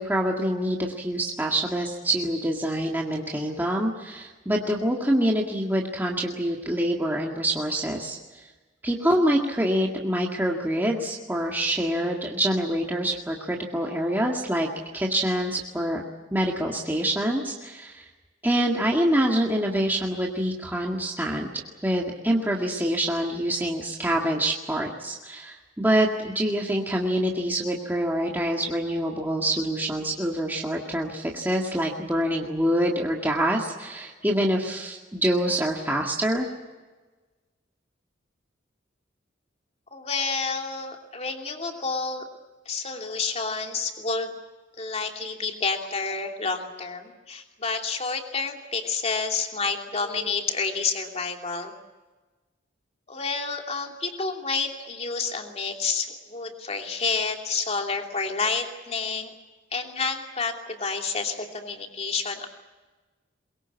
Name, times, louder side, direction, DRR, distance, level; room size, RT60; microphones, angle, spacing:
voice 1, 0.0-8.5 8.8-14.7 14.9-16.0 16.3-18.1 18.4-21.5 21.8-36.5, right 1 dB, 10° right, -1 dB, 1.9 m, -26 dB
voice 2, 39.9-42.2 42.7-44.4 44.8-51.7 53.1-59.3 59.7-62.5, left 4 dB, 35° left, 3 dB, 2.9 m, -29 dB
23.0 x 22.5 x 8.3 m, 1.3 s
head